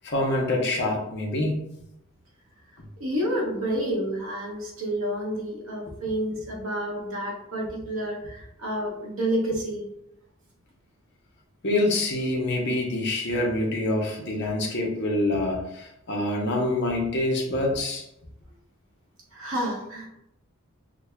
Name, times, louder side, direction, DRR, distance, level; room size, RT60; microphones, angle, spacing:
voice 1, 0.0-1.6 11.6-18.0, left 1 dB, 50° left, 0 dB, 0.7 m, -26 dB
voice 2, 3.0-9.8 19.3-20.1, right 1 dB, 65° right, -1 dB, 0.9 m, -29 dB
6.1 x 2.1 x 2.2 m, 0.80 s
head